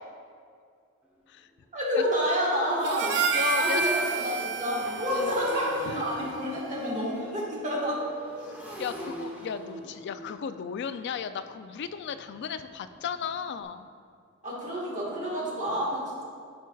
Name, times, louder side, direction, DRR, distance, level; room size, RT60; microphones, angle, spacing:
Motorcycle, 1.0-1.1 1.6-1.8 2.0-13.6, equal, 5° right, 1.0 m, -44 dB
voice 1, 1.7-3.2 3.5-8.0 14.4-16.2, equal, 35° right, -4 dB, 1.5 m, -29 dB
Harmonica, 2.8-7.3, right 5 dB, 55° right, 0.4 m, -31 dB
voice 2, 3.3-4.0 4.6-5.4 5.8-6.3 8.4-8.5 8.8-13.9, left 7 dB, 55° left, 10 dB, 0.3 m, -35 dB
13.0 x 4.5 x 2.3 m, 2.2 s
head